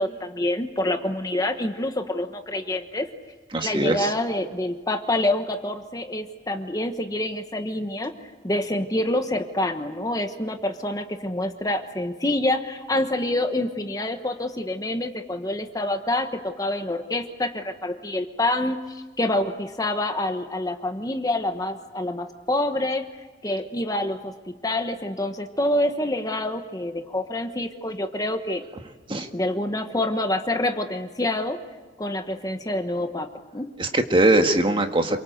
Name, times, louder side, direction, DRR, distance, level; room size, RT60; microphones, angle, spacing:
voice 1, 0.0-3.1 3.6-8.1 8.4-23.0 23.4-28.6 29.3-31.6 32.0-33.7, left 1 dB, 20° left, 7 dB, 1.2 m, -27 dB
voice 2, 3.5-4.1 29.1-29.3 33.8-35.2, right 1 dB, 25° right, 5 dB, 1.8 m, -21 dB
28.0 x 24.0 x 8.0 m, 1.3 s
head